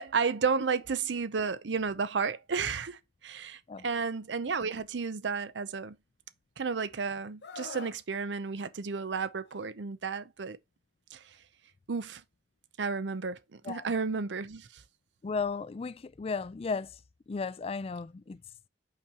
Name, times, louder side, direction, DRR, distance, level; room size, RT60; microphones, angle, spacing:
voice 1, 0.0-6.0 6.6-10.6 11.1-11.2 11.9-12.2 12.8-14.8, right 5 dB, 85° right, 0.6 m, -32 dB
Screaming, 7.4-8.0 9.4-9.7, left 4 dB, 65° left, 0.8 m, -44 dB
voice 2, 15.2-17.0 17.3-18.4, left 4 dB, 35° left, 0.4 m, -34 dB
5.7 x 4.5 x 4.9 m
head